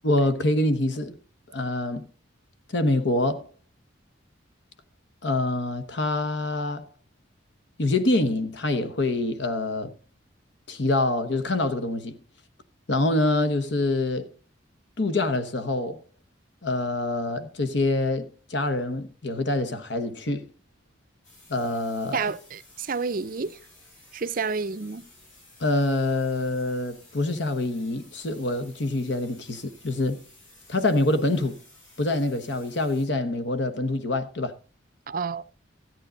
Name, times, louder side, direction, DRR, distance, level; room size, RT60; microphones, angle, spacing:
voice 1, 0.0-1.2 1.5-2.1 2.7-3.5 5.2-6.9 7.8-9.9 10.7-12.2 12.9-14.3 15.0-16.0 16.6-20.5 21.5-22.3 25.6-30.2 30.7-31.6 32.0-34.6, left 2 dB, 60° left, 1.1 m, -25 dB
sound 1, 21.2-33.1, left 2 dB, 85° left, 7.7 m, -54 dB
voice 2, 22.1-23.6 24.1-25.0 35.1-35.4, right 5 dB, 45° right, 0.5 m, -29 dB
14.0 x 9.1 x 3.9 m
head